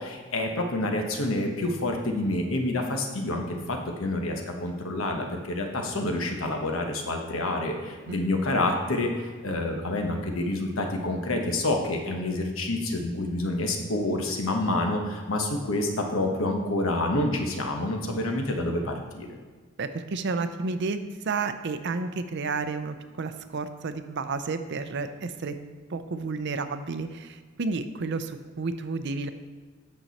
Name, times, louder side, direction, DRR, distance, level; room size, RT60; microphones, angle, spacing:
voice 1, 0.0-19.4, left 2 dB, 85° left, 3 dB, 1.2 m, -28 dB
voice 2, 19.8-21.0 21.2-25.6 25.9-29.3, right 4 dB, 60° right, 10 dB, 0.6 m, -31 dB
8.8 x 6.2 x 4.1 m, 1.4 s
head